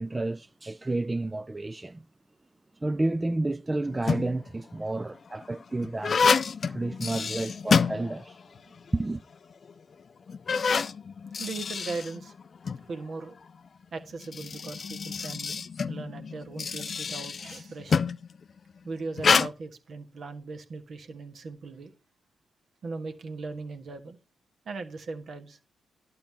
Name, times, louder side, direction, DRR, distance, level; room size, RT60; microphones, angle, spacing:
voice 1, 0.0-2.0 2.8-6.3 6.7-8.4 8.9-9.2, right 2 dB, 25° right, 0.4 m, -30 dB
sound 1, 3.8-4.5 5.2-8.6 8.9-9.0 9.7-9.8 10.3-12.8 14.0-18.3 19.2-19.5, left 5 dB, 50° left, 0.4 m, -27 dB
voice 2, 11.4-12.3 12.9-13.4 13.9-18.0 18.8-21.9 22.8-24.2 24.6-25.6, right 3 dB, 60° right, 1.5 m, -39 dB
11.5 x 4.0 x 7.2 m
hypercardioid pair, 40°, 0 cm